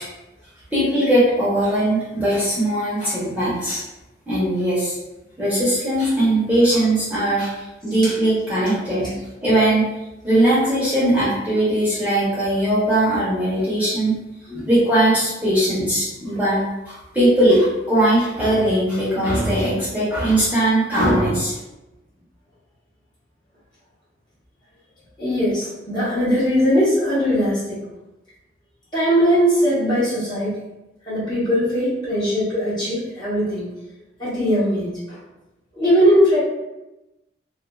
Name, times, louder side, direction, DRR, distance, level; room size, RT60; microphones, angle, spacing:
voice 1, 0.7-3.8 4.3-5.0 5.4-9.8 10.2-14.1 14.7-21.5, right 1 dB, 10° right, -11 dB, 0.9 m, -19 dB
voice 2, 25.2-27.8 28.9-30.6 31.1-33.7 34.2-35.2 35.7-36.4, equal, 25° left, -11 dB, 0.9 m, -20 dB
2.4 x 2.4 x 2.2 m, 0.98 s
head